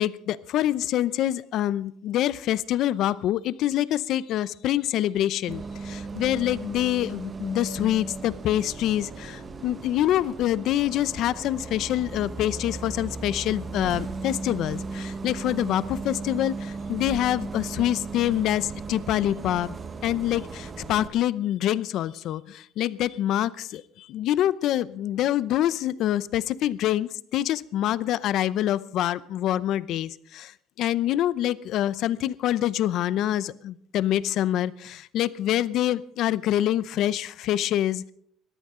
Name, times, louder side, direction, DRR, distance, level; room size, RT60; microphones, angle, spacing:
voice 1, 0.0-19.7 20.0-38.1, left 12 dB, 60° left, 18 dB, 0.6 m, -26 dB
Bus, 5.5-21.1, right 4 dB, 25° right, 1.1 m, -36 dB
20.5 x 14.5 x 3.8 m, 0.64 s
cardioid pair, 145°, 0 cm